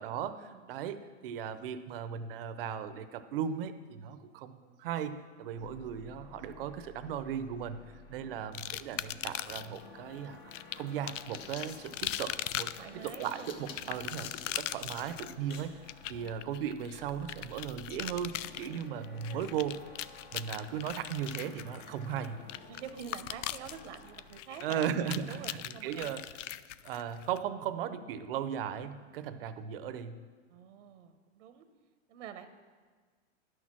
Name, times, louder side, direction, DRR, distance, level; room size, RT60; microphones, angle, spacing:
voice 1, 0.0-10.4 10.8-12.7 13.0-19.8 20.3-22.5 24.6-26.2 26.8-30.3, right 8 dB, 50° right, 11 dB, 0.6 m, -37 dB
sound 1, 5.5-24.4, left 3 dB, 15° left, 0.4 m, -54 dB
sound 2, 8.5-9.8 10.5-27.4, left 13 dB, 85° left, 0.5 m, -40 dB
sound 3, 9.9-10.0 11.0-15.8, left 6 dB, 55° left, 1.1 m, -50 dB
voice 2, 12.8-14.0 16.0-16.3 18.6-19.4 22.7-24.9 25.2-26.3 26.5-26.6 29.2-29.4 30.5-31.6 32.1-32.5, right 8 dB, 75° right, 9 dB, 0.9 m, -48 dB
11.0 x 6.5 x 6.0 m, 1.5 s
supercardioid pair, 165°, 36 cm